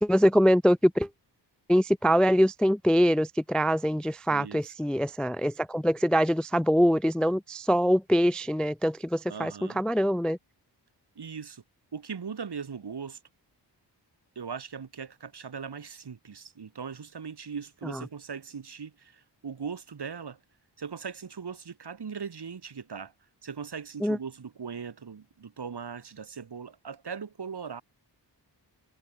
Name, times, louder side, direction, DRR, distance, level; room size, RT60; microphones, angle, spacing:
voice 1, 0.0-1.1 1.7-10.4 17.8-18.0 24.0-24.2, equal, ahead, 0.3 m, -24 dB
voice 2, 4.3-4.7 9.3-9.8 11.1-11.6 11.9-13.2 14.3-20.4 20.8-23.1 23.4-27.8, right 6 dB, 65° right, 4.9 m, -39 dB
wide cardioid pair, 90°, 42 cm